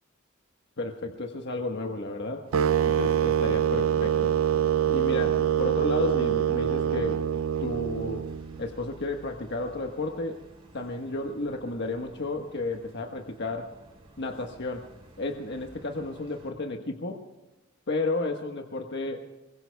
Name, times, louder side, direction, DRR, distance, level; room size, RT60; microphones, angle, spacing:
voice 1, 0.8-2.5 2.9-4.3 4.9-7.3 7.6-8.3 8.6-10.4 10.7-13.7 14.2-14.8 15.2-17.2 17.9-19.2, left 2 dB, 60° left, 3 dB, 1.3 m, -32 dB
sound 1, 2.4-16.5, right 1 dB, 30° right, 4.9 m, -53 dB
sound 2, 2.5-8.6, right 9 dB, 70° right, 0.5 m, -25 dB
26.0 x 23.0 x 2.3 m, 1.1 s
head